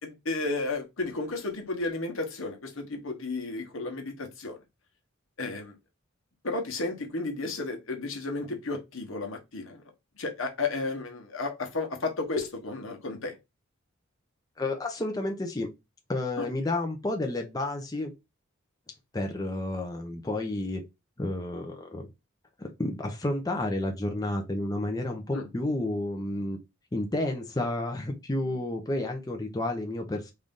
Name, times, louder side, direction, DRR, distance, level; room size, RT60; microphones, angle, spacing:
voice 1, 0.0-4.6 5.4-5.7 6.4-9.8 10.2-13.3 16.4-16.5 25.3-25.5, left 3 dB, 75° left, 1.1 m, -33 dB
voice 2, 14.6-15.7 16.1-18.1 19.1-20.8 21.2-22.1 22.6-26.6 26.9-30.3, left 1 dB, 20° left, 0.6 m, -31 dB
3.3 x 2.6 x 3.6 m
head